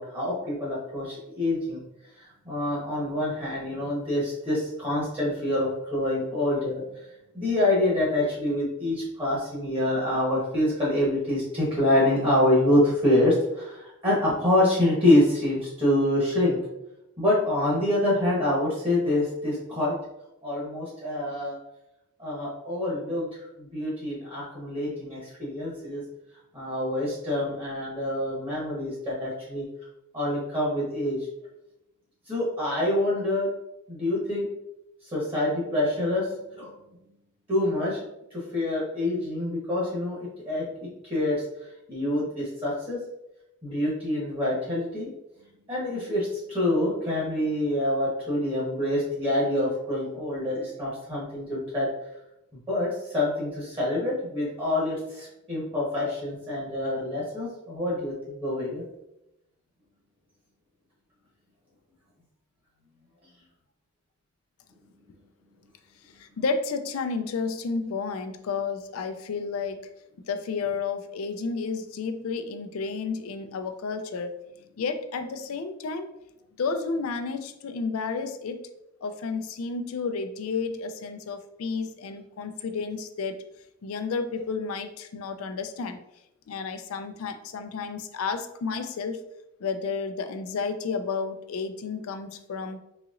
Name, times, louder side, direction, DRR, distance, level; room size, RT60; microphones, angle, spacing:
voice 1, 0.0-1.8 2.2-6.8 7.3-16.6 17.2-20.0 20.4-21.6 22.2-23.3 23.6-26.0 26.5-29.6 30.1-31.2 32.3-33.5 33.9-34.5 35.1-36.3 36.6-36.7 37.5-38.0 38.3-40.2 40.5-40.7 41.0-41.4 41.9-43.0 43.6-45.1 45.7-51.9 52.7-58.1 58.4-58.8, left 1 dB, 25° right, -6 dB, 1.0 m, -26 dB
voice 2, 66.2-69.8 70.3-74.4 74.8-76.1 76.6-78.6 79.0-83.4 83.8-86.0 86.5-89.2 89.6-92.8, left 4 dB, 80° left, 8 dB, 0.4 m, -31 dB
4.0 x 2.9 x 2.5 m, 0.86 s
head